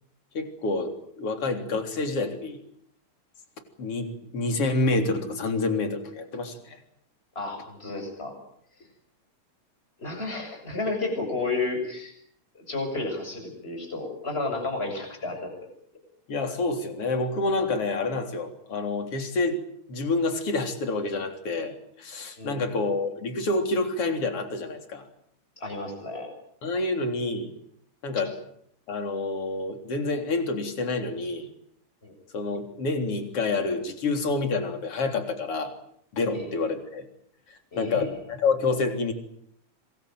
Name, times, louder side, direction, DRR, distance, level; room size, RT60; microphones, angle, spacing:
voice 1, 0.3-2.6 3.8-6.8 16.3-19.6 19.9-25.0 26.6-27.5 28.0-28.4 28.9-31.5 32.3-35.7 36.1-37.1 37.8-39.1, left 3 dB, 50° left, 6 dB, 4.4 m, -28 dB
voice 2, 7.4-8.4 10.0-12.1 12.5-15.5 22.4-22.6 25.6-26.3 32.0-32.1 36.3-36.5 37.7-38.1, left 3 dB, 20° left, 4 dB, 7.5 m, -32 dB
26.5 x 22.0 x 9.3 m, 0.67 s
omnidirectional pair, 3.3 m